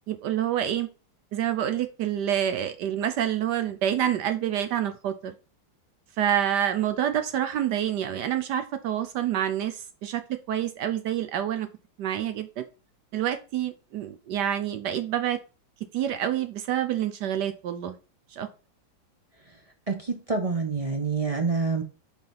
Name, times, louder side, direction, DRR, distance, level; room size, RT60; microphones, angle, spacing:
voice 1, 0.1-0.9 1.3-5.3 6.2-11.7 12.0-12.6 13.1-15.4 15.9-18.0 18.3-18.5, right 10 dB, 70° right, 1.1 m, -27 dB
voice 2, 19.9-21.8, right 4 dB, 55° right, 0.4 m, -27 dB
4.9 x 4.6 x 5.4 m
omnidirectional pair, 2.1 m